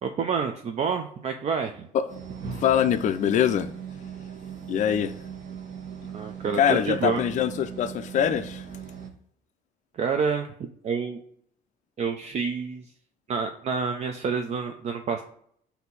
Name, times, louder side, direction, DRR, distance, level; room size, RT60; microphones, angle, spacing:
voice 1, 0.0-1.9 6.1-7.2 10.0-10.5 10.8-11.2 12.0-12.9 13.3-15.2, right 5 dB, 40° right, 0.4 m, -28 dB
sound 1, 2.1-9.1, right 7 dB, 60° right, 1.3 m, -39 dB
voice 2, 2.6-3.7 4.7-5.1 6.5-8.6, left 9 dB, 45° left, 0.4 m, -23 dB
4.3 x 2.7 x 3.9 m
cardioid pair, 110°, 17 cm